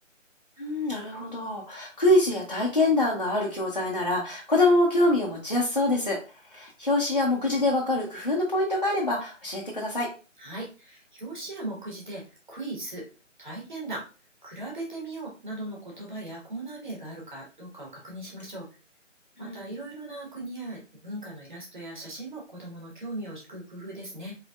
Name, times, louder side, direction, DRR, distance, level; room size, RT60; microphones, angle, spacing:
voice 1, 0.6-6.2 6.5-10.1 19.4-19.7, left 2 dB, 35° left, -4 dB, 0.6 m, -25 dB
voice 2, 10.4-13.0 13.4-14.0 14.4-18.7 19.4-24.3, right 2 dB, 35° right, -3 dB, 1.6 m, -38 dB
3.9 x 3.5 x 2.4 m, 0.35 s
figure-of-eight pair, 175°, 38 cm